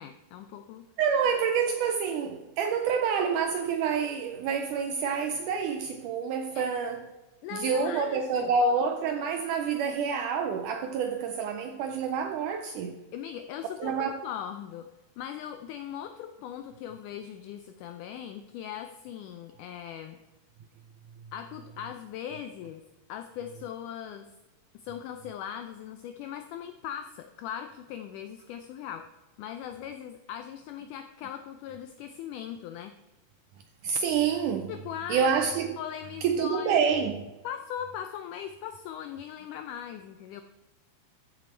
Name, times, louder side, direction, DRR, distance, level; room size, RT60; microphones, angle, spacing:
voice 1, 0.0-0.9 6.6-6.7 7.4-8.5 13.1-14.9 15.2-20.2 21.3-22.8 23.1-24.3 24.7-29.1 29.4-32.9 34.7-35.3 35.8-37.1 37.4-40.4, left 9 dB, 85° left, 1.8 m, -39 dB
voice 2, 1.0-7.1 7.5-13.0 13.8-14.1 33.8-34.7 35.1-35.8 36.2-37.3, right 6 dB, 85° right, 1.8 m, -28 dB
14.0 x 6.2 x 4.4 m
omnidirectional pair, 4.2 m